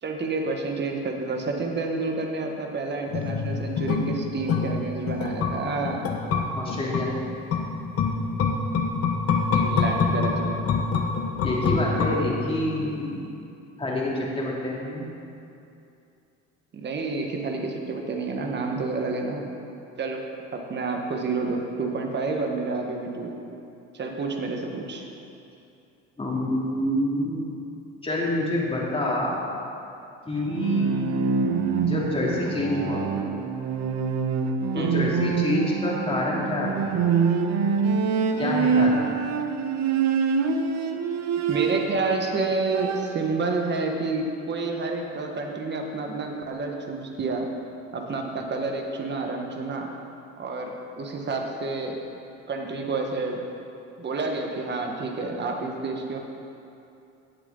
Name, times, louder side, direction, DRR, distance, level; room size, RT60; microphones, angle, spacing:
voice 1, 0.0-6.1 9.5-10.6 16.7-19.5 20.0-20.2 20.5-23.3 23.9-25.1 34.7-35.0 41.5-47.4 47.9-49.9 50.4-52.0 52.5-53.4 54.0-56.2, right 3 dB, 35° right, 2 dB, 1.6 m, -29 dB
sound 1, 3.1-12.7 13.0-13.1, left 5 dB, 50° left, 1.3 m, -26 dB
voice 2, 6.5-7.1 11.4-13.2 13.8-15.0 26.2-27.5 28.0-29.4 30.2-30.9 31.8-33.0 34.7-37.0 38.4-39.0, left 1 dB, 20° left, -5 dB, 2.8 m, -27 dB
Bowed string instrument, 30.4-42.1 42.5-43.3, right 5 dB, 60° right, 0.9 m, -25 dB
17.5 x 7.9 x 4.0 m, 2.7 s
cardioid pair, 110°, 31 cm